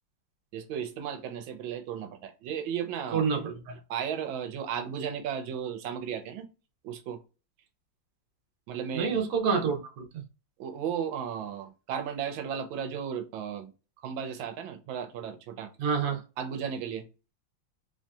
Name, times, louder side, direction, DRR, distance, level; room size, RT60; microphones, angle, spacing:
voice 1, 0.5-3.2 3.9-6.5 6.8-7.2 8.7-9.2 10.6-13.7 14.0-15.7 16.4-17.0, right 8 dB, 80° right, 1.3 m, -35 dB
voice 2, 3.1-3.8 8.9-10.2 15.8-16.2, right 6 dB, 60° right, 1.0 m, -28 dB
3.2 x 2.6 x 2.3 m
omnidirectional pair, 2.1 m